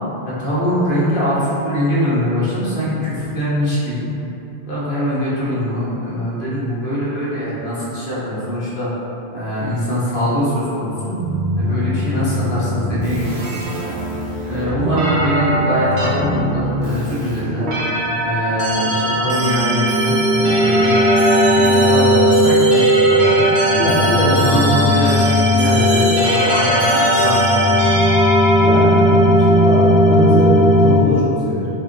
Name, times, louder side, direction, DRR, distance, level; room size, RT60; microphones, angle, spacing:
voice 1, 0.2-4.1 4.7-8.9 9.3-11.2 11.6-13.6 14.4-17.7 18.2-23.5 24.0-27.7, equal, 55° left, -9 dB, 1.2 m, -22 dB
sound 1, 11.2-31.0, equal, 75° right, 1.1 m, -16 dB
voice 2, 23.7-24.6 28.6-31.7, left 1 dB, 80° left, -7 dB, 1.0 m, -21 dB
5.6 x 2.8 x 2.7 m, 3.0 s
omnidirectional pair, 1.1 m